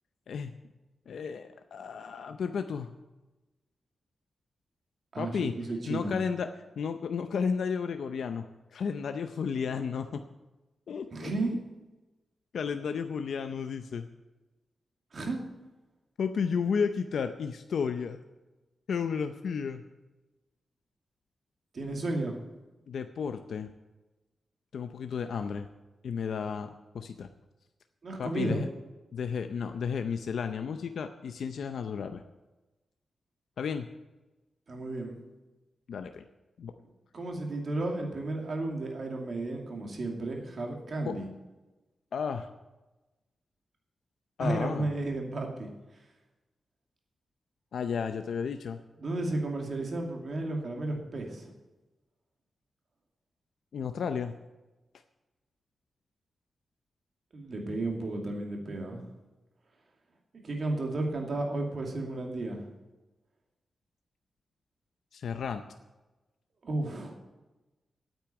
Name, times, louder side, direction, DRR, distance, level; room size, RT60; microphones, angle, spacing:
voice 1, 1.1-2.9 5.2-5.6 5.9-6.5 6.8-8.5 8.7-10.2 10.9-11.3 12.5-14.1 16.2-18.2 18.9-19.8 22.9-23.7 24.7-25.7 26.0-27.3 28.2-28.7 29.1-32.2 33.6-33.9 35.9-36.2 36.6-36.7 41.1-41.2 42.1-42.5 44.4-44.9 47.7-48.8 53.7-54.3 65.1-65.6, left 6 dB, 80° left, 8 dB, 0.6 m, -32 dB
voice 2, 5.1-6.2 11.1-11.6 15.1-15.4 21.7-22.4 28.0-28.6 34.7-35.2 37.1-41.3 44.4-45.7 49.0-51.5 57.3-59.0 60.4-62.6 66.6-67.2, right 2 dB, 50° right, 1 dB, 2.4 m, -33 dB
9.1 x 8.5 x 8.9 m, 1.1 s
wide cardioid pair, 130°, 0 cm